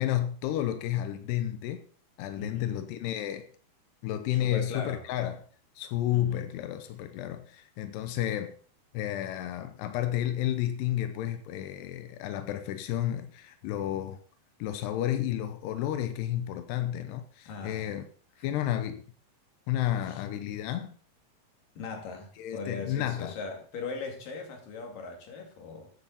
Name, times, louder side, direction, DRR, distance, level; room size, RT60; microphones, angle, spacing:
voice 1, 0.0-1.8 2.2-3.5 4.0-5.4 5.8-8.5 8.9-14.2 14.6-18.0 18.4-19.0 19.7-20.9 22.4-23.3, left 12 dB, 90° left, 2.9 m, -31 dB
voice 2, 2.4-2.8 4.3-5.0 6.1-6.5 17.5-18.0 18.4-18.5 20.1-20.2 21.8-25.9, left 4 dB, 60° left, 3.9 m, -39 dB
14.5 x 8.5 x 4.1 m
omnidirectional pair, 4.6 m